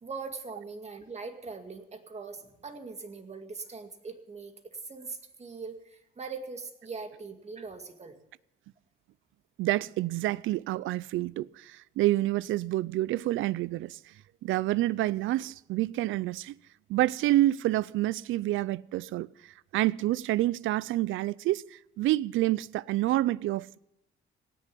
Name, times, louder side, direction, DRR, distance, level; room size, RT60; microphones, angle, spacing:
voice 1, 0.0-8.2, right 4 dB, 35° right, 2.1 m, -41 dB
voice 2, 9.6-14.0 14.4-16.5 16.9-23.8, right 16 dB, 80° right, 0.5 m, -28 dB
18.0 x 7.1 x 9.8 m
cardioid pair, 90°, 20 cm